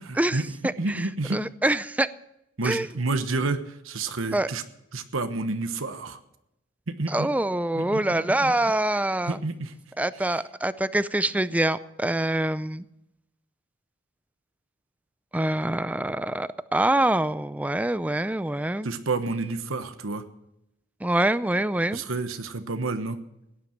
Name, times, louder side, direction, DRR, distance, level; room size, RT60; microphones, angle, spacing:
voice 1, 0.1-0.4 0.8-1.4 2.6-4.6 4.9-6.2 6.9-7.3 7.7-8.7 9.2-9.7 10.1-10.4 18.8-20.2 21.9-23.2, right 3 dB, 80° right, 9 dB, 1.1 m, -30 dB
voice 2, 1.3-2.1 2.6-2.9 4.3-4.5 7.1-9.4 10.0-12.8 15.3-18.9 21.0-22.0, right 1 dB, 5° right, 15 dB, 0.4 m, -25 dB
17.0 x 10.5 x 5.9 m, 0.85 s
head